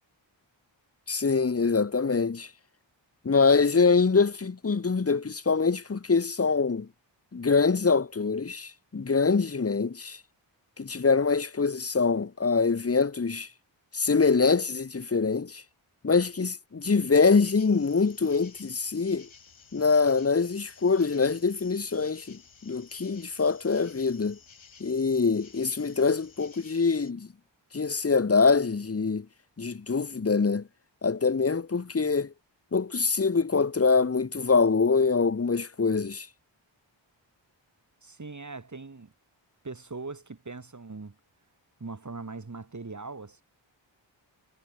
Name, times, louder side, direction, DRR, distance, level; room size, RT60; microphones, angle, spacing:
voice 1, 1.1-2.5 3.2-6.9 7.3-10.2 10.8-13.5 13.9-15.6 16.0-19.3 19.7-24.4 24.8-27.3 27.7-29.3 29.6-30.7 31.0-32.3 32.7-36.3, left 4 dB, 30° left, 1.2 m, -24 dB
sound 1, 17.4-27.1, left 6 dB, 80° left, 7.4 m, -54 dB
voice 2, 38.0-39.1 39.6-41.2 41.8-43.4, right 3 dB, 40° right, 5.8 m, -40 dB
wide cardioid pair, 120°, 46 cm